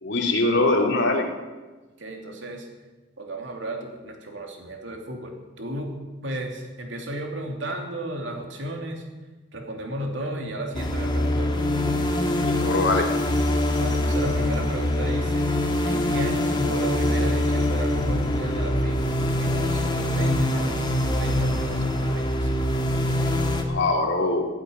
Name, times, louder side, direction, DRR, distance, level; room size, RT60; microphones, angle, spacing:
voice 1, 0.0-1.3 12.4-13.1 23.7-24.4, left 2 dB, 70° left, 1 dB, 2.9 m, -22 dB
voice 2, 2.0-2.7 3.2-9.0 9.5-11.7 13.8-15.5 15.8-22.7, right 1 dB, 70° right, 2 dB, 3.0 m, -34 dB
sound 1, 10.7-23.6, left 1 dB, 25° left, 1.8 m, -24 dB
15.0 x 9.1 x 9.3 m, 1.2 s
head